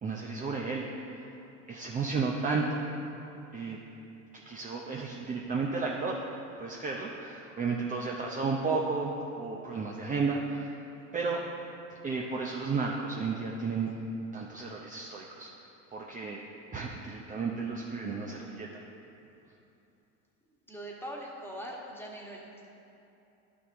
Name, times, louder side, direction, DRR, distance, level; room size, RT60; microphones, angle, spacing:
voice 1, 0.0-0.9 1.7-2.8 3.5-3.8 4.3-6.2 6.6-9.1 9.4-10.8 11.1-11.4 12.0-13.9 14.3-15.5 15.9-16.4 16.7-18.7, right 4 dB, 20° right, -2 dB, 0.7 m, -33 dB
voice 2, 20.7-22.7, right 1 dB, 5° left, -2 dB, 1.5 m, -42 dB
11.0 x 6.1 x 3.6 m, 2.8 s
hypercardioid pair, 90°, 39 cm